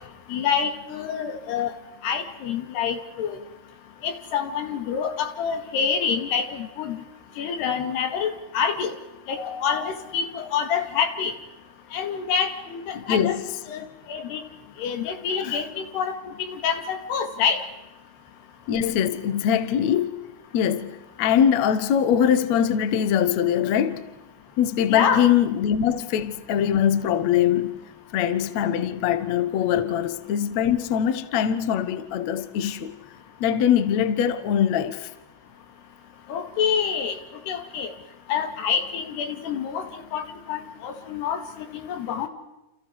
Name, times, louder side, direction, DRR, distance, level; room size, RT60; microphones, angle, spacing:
voice 1, 0.3-1.7 2.0-3.4 4.0-7.0 7.4-8.9 9.3-11.3 11.9-13.4 13.7-14.4 14.8-15.7 15.9-16.2 16.5-17.6 24.9-25.3 36.3-37.2 37.5-37.9 38.3-42.3, left 7 dB, 75° left, 4.3 m, -27 dB
voice 2, 12.9-13.4 15.4-15.6 18.7-20.2 20.5-24.0 24.6-27.8 28.1-33.0 33.4-35.1, left 9 dB, 60° left, 1.9 m, -22 dB
29.5 x 29.0 x 4.8 m
omnidirectional pair, 4.7 m